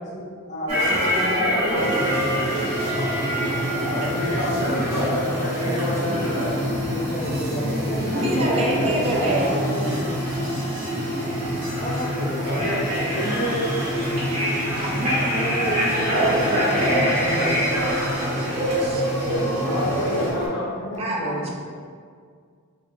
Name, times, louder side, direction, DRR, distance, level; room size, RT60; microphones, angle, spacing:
voice 1, 0.0-2.0 6.9-10.2 11.8-12.7 15.3-17.6 19.3-21.5, equal, 35° left, -5 dB, 0.6 m, -30 dB
sound 1, 0.7-20.5, equal, 90° right, 1.1 m, -27 dB
sound 2, 1.7-20.3, equal, 65° right, 1.2 m, -27 dB
voice 2, 3.7-6.6 12.4-12.8 13.1-13.6 19.6-20.7, left 1 dB, 85° left, -6 dB, 0.8 m, -28 dB
voice 3, 8.1-9.6 14.8-15.3 18.8-19.0 21.0-21.5, right 1 dB, 25° right, -2 dB, 0.3 m, -27 dB
3.0 x 2.1 x 2.7 m, 2.1 s
head